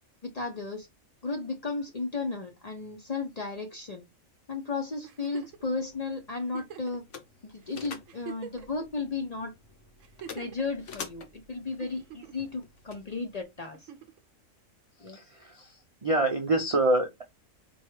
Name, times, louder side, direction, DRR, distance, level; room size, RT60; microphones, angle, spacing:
voice 1, 0.2-0.9 1.2-4.0 4.5-7.0 7.4-9.5 10.3-13.9 15.0-15.2, left 3 dB, 40° left, 0.6 m, -34 dB
Giggle, 5.0-5.6 6.5-7.0 7.6-7.7 8.1-8.8 10.0-10.6 11.8-12.5 13.7-14.2 15.7-15.8, right 8 dB, 75° right, 1.0 m, -44 dB
sound 1, 5.4-13.4, left 6 dB, 65° left, 1.0 m, -48 dB
voice 2, 15.0-17.2, right 2 dB, 55° right, 0.3 m, -27 dB
4.5 x 2.3 x 3.0 m
omnidirectional pair, 1.4 m